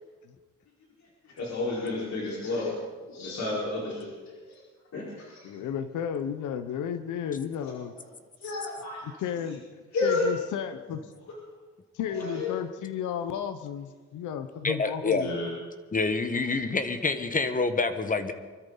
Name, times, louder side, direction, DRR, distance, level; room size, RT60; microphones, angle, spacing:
voice 1, 1.4-2.8 3.1-4.4 4.9-5.5 8.4-9.0 9.9-10.3 12.1-12.5 15.1-15.5, left 3 dB, 65° left, -4 dB, 4.6 m, -31 dB
voice 2, 5.4-8.0 9.0-11.1 11.9-15.3, left 8 dB, 80° left, 9 dB, 1.0 m, -33 dB
voice 3, 14.6-15.3 15.9-18.3, left 3 dB, 25° left, 9 dB, 1.4 m, -27 dB
24.0 x 13.0 x 4.0 m, 1.4 s
cardioid pair, 90°, 30 cm